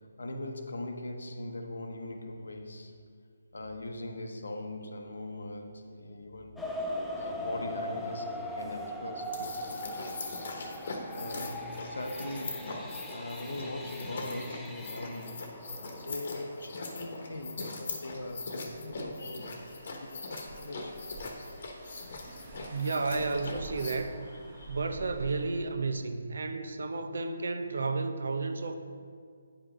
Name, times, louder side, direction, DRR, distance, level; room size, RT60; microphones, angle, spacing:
voice 1, 0.0-3.0 3.5-6.6 7.1-10.5 11.1-15.6 15.9-21.0 24.3-24.8, left 1 dB, 80° left, 5 dB, 0.9 m, -41 dB
sound 1, 6.6-19.2 19.8-19.9 20.4-20.6 20.9-21.0, left 1 dB, 5° left, 0.5 m, -41 dB
sound 2, 9.2-23.9, left 3 dB, 60° left, 1.1 m, -41 dB
Car / Engine, 18.7-25.6, right 2 dB, 35° right, 1.1 m, -48 dB
voice 2, 22.6-24.2 24.7-28.8, right 3 dB, 70° right, 7 dB, 0.7 m, -32 dB
9.0 x 5.1 x 3.7 m, 2.1 s
hypercardioid pair, 155°, 0 cm